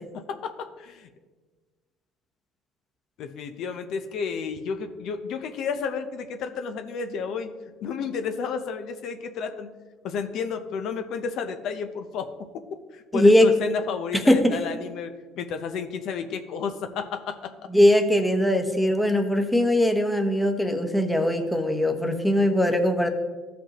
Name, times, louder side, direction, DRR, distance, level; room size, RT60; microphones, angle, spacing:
voice 1, 0.1-1.1 3.2-7.5 7.8-9.7 10.0-12.5 12.9-17.4, left 6 dB, 65° left, 7 dB, 0.6 m, -31 dB
voice 2, 13.1-13.5 14.3-14.6 17.7-23.1, left 1 dB, 5° left, 4 dB, 0.9 m, -20 dB
14.0 x 5.2 x 3.0 m, 1.4 s
supercardioid pair, 95°, 0 cm